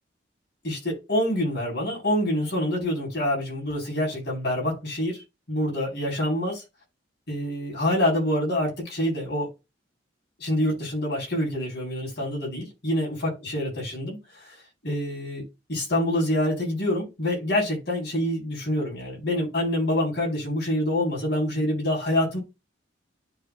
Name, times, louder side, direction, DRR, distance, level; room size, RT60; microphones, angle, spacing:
voice 1, 0.6-5.2 5.5-6.6 7.3-9.5 10.4-14.2 14.8-15.4 15.7-22.4, left 1 dB, 60° left, 4.2 m, -26 dB
11.5 x 3.9 x 2.4 m
head